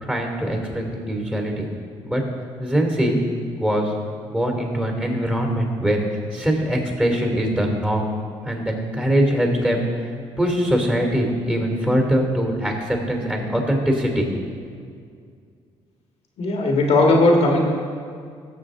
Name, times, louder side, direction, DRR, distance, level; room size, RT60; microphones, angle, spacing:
voice 1, 0.0-1.7 2.0-2.2 2.6-3.2 3.5-3.9 4.3-6.0 6.3-8.0 8.4-10.1 10.4-14.5, equal, 10° right, 1 dB, 2.9 m, -22 dB
voice 2, 16.4-17.6, left 2 dB, 60° left, 0 dB, 1.8 m, -17 dB
16.0 x 7.0 x 3.8 m, 2.2 s
supercardioid pair, 75°, 12 cm